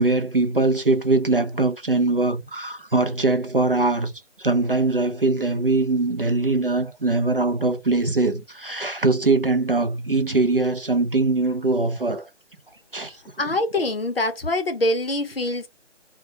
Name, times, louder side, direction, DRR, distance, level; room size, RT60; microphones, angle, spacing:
voice 1, 0.0-4.1 4.4-12.3 12.9-13.2, right 3 dB, 50° right, 0.4 m, -22 dB
voice 2, 13.4-15.7, left 1 dB, 50° left, 0.7 m, -24 dB
2.2 x 2.1 x 2.8 m
figure-of-eight pair, 155°, 37 cm